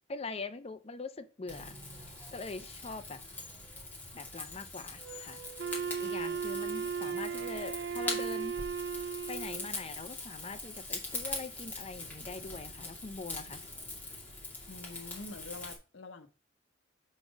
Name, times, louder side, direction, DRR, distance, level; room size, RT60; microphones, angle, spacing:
voice 1, 0.0-1.8 2.3-3.2 4.1-5.4 6.0-8.6 9.3-13.6, left 3 dB, 30° left, 0.5 m, -43 dB
Rain / Fire, 1.5-15.8, left 2 dB, 10° left, 2.3 m, -42 dB
Wind instrument woodwind instrument, 5.6-9.7, right 6 dB, 65° right, 0.5 m, -36 dB
voice 2, 14.7-16.3, left 3 dB, 75° left, 0.9 m, -46 dB
5.0 x 4.2 x 6.0 m
head